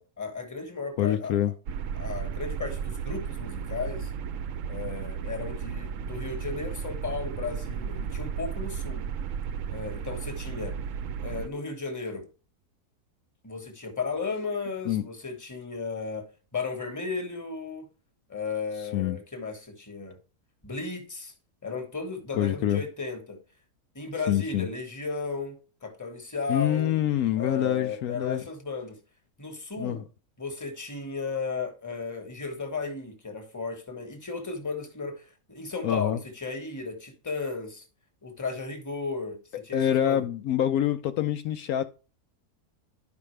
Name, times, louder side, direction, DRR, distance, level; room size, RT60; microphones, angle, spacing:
voice 1, 0.0-1.3 2.0-4.1 4.7-9.0 9.7-10.8 11.2-12.3 13.4-16.3 16.5-17.9 18.3-20.2 20.6-21.3 21.6-23.4 23.9-26.9 27.3-29.0 29.4-30.0 30.4-37.8 38.2-40.2, left 4 dB, 10° left, 1.3 m, -35 dB
voice 2, 1.0-1.5 14.9-15.0 18.9-19.2 22.3-22.8 24.3-24.7 26.5-28.4 29.8-30.0 35.8-36.2 39.5-41.8, left 11 dB, 75° left, 1.0 m, -26 dB
sound 1, 1.7-11.5, right 7 dB, 65° right, 0.9 m, -34 dB
12.0 x 5.2 x 3.2 m
omnidirectional pair, 1.7 m